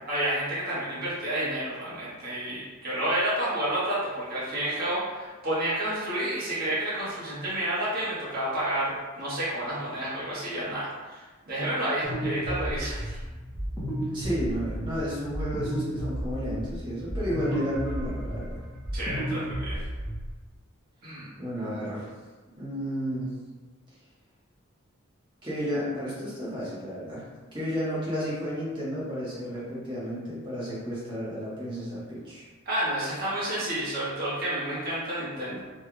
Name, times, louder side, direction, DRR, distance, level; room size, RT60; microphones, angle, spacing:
voice 1, 0.1-13.2 18.9-19.8 21.0-21.3 32.6-35.6, right 1 dB, 50° right, -9 dB, 1.3 m, -30 dB
sound 1, 12.0-20.3, right 1 dB, 10° left, 0.9 m, -33 dB
voice 2, 14.1-18.6 21.4-22.1 22.6-23.3 25.4-27.3 27.5-32.4, equal, 25° right, -9 dB, 1.1 m, -32 dB
3.3 x 3.2 x 2.3 m, 1.3 s
head